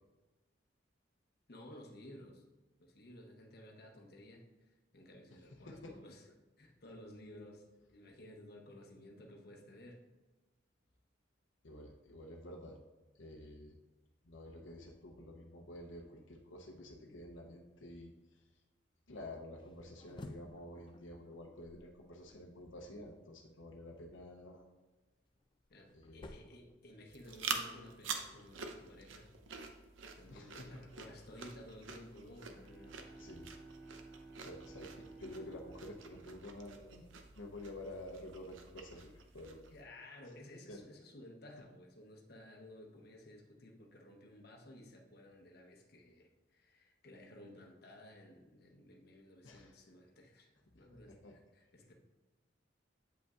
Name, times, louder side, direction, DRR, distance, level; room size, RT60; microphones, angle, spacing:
voice 1, 1.5-2.4 2.8-6.3 6.6-10.0 25.7-29.3 30.2-33.0 39.7-51.9, left 1 dB, 55° left, 1 dB, 0.9 m, -55 dB
voice 2, 11.6-12.8 13.2-13.7 14.2-18.1 19.1-24.6 25.9-26.3 30.3-30.8 33.2-33.5 34.4-37.0 37.4-39.6 40.7-40.8 49.4-49.7 51.1-51.3, left 1 dB, 80° left, 1 dB, 0.7 m, -50 dB
sound 1, 19.6-22.7 24.9-27.5, left 2 dB, 25° left, 0.3 m, -56 dB
sound 2, 27.1-39.8, right 5 dB, 90° right, 0.6 m, -47 dB
Bowed string instrument, 32.4-37.6, right 3 dB, ahead, 1.5 m, -55 dB
8.1 x 5.1 x 2.4 m, 1.2 s
head